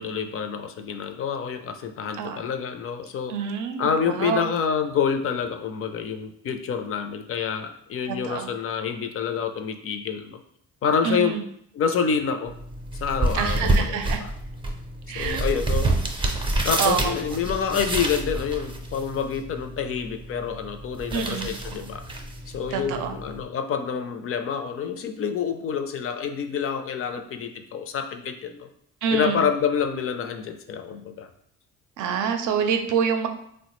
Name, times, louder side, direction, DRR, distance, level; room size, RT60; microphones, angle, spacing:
voice 1, 0.0-3.3 3.8-10.4 10.8-11.4 11.8-12.5 13.0-14.3 15.2-16.3 16.6-22.0 22.5-28.7 29.1-31.3, left 7 dB, 50° left, 7 dB, 0.4 m, -27 dB
voice 2, 2.2-2.5 3.3-4.5 8.1-8.5 11.0-11.4 13.3-14.2 15.1-15.4 16.8-17.1 21.1-21.5 22.7-23.2 29.0-29.5 32.0-33.3, right 7 dB, 80° right, 6 dB, 0.5 m, -26 dB
sound 1, 12.4-23.4, right 2 dB, 15° right, 0.4 m, -28 dB
3.5 x 2.1 x 3.0 m, 0.70 s
cardioid pair, 90°, 30 cm